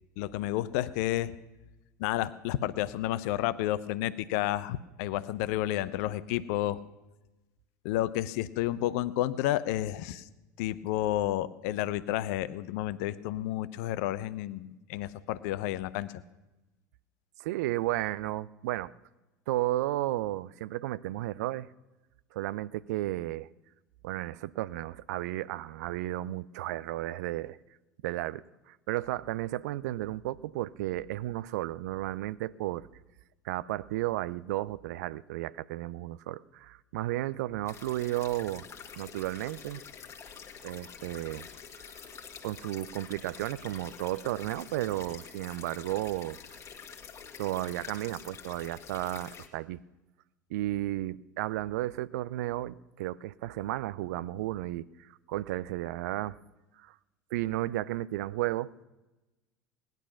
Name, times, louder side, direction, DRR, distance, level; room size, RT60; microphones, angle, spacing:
voice 1, 0.2-1.3 2.0-6.8 7.8-10.2 10.6-16.2, left 14 dB, 55° left, 15 dB, 0.7 m, -31 dB
voice 2, 17.4-18.9 19.5-21.7 22.3-23.5 24.0-27.6 28.0-32.9 33.4-38.7 39.0-39.8 40.6-41.5 42.4-46.6 47.4-49.8 50.5-56.4 56.8-56.9 57.3-58.7, right 16 dB, 60° right, 18 dB, 0.4 m, -33 dB
sound 1, 37.7-49.5, left 7 dB, 30° left, 1.9 m, -47 dB
18.5 x 10.5 x 5.9 m, 1.0 s
figure-of-eight pair, 75°, 10 cm